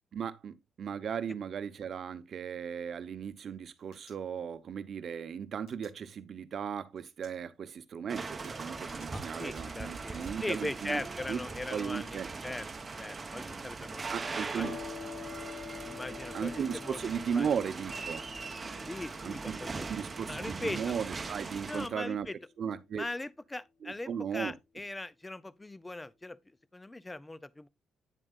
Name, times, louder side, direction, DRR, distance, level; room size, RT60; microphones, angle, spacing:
voice 1, 0.1-11.0 11.3-11.4 11.7-12.3 14.1-14.8 16.3-18.2 19.2-19.5 19.9-22.3 22.6-23.0 23.8-24.5, right 7 dB, 55° right, 0.8 m, -36 dB
sound 1, 3.6-4.7 5.7-5.9 7.0-7.4 7.8-7.9 8.3-10.7, left 2 dB, 85° left, 6.2 m, -62 dB
sound 2, 8.1-21.9, right 4 dB, 30° right, 0.8 m, -41 dB
voice 2, 9.1-12.7 13.0-14.0 14.5-14.7 15.8-17.0 17.3-17.5 18.9-19.9 20.3-20.8 21.7-22.4 23.0-26.4 26.7-27.7, left 2 dB, 15° left, 0.4 m, -40 dB
sound 3, 14.6-22.1, left 5 dB, 65° left, 5.5 m, -47 dB
9.2 x 7.4 x 2.4 m
cardioid pair, 90°, 0 cm